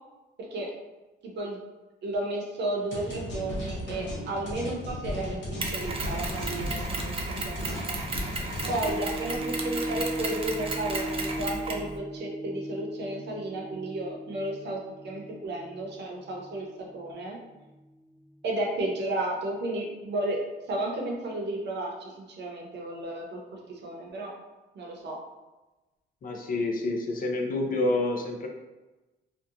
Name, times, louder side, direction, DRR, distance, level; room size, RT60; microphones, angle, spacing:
voice 1, 1.2-1.6 2.0-8.0 8.7-17.4 18.4-20.4 20.7-21.9 22.3-24.3 24.7-25.2, right 2 dB, 60° right, -1 dB, 0.7 m, -33 dB
sound 1, 2.9-8.9, left 1 dB, 65° left, 0.8 m, -35 dB
Mechanisms, 5.6-11.9, right 2 dB, 30° right, 0.4 m, -34 dB
sound 2, 8.8-17.2 17.7-17.8, equal, 10° left, 0.8 m, -37 dB
voice 2, 26.2-28.5, left 2 dB, 45° left, 2 dB, 0.5 m, -28 dB
2.8 x 2.2 x 2.4 m, 1.1 s
cardioid pair, 90°, 20 cm